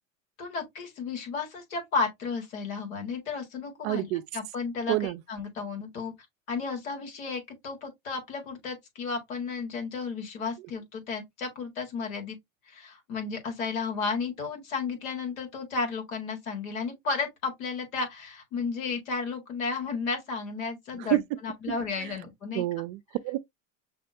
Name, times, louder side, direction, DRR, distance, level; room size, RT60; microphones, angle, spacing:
voice 1, 0.4-6.1 6.5-12.4 12.7-22.6, left 4 dB, 85° left, 1.8 m, -33 dB
voice 2, 3.8-4.2 4.9-5.2 20.9-21.2 22.0-22.2 22.5-23.4, right 17 dB, 55° right, 0.5 m, -28 dB
6.0 x 2.2 x 2.7 m
hypercardioid pair, 95°, 40 cm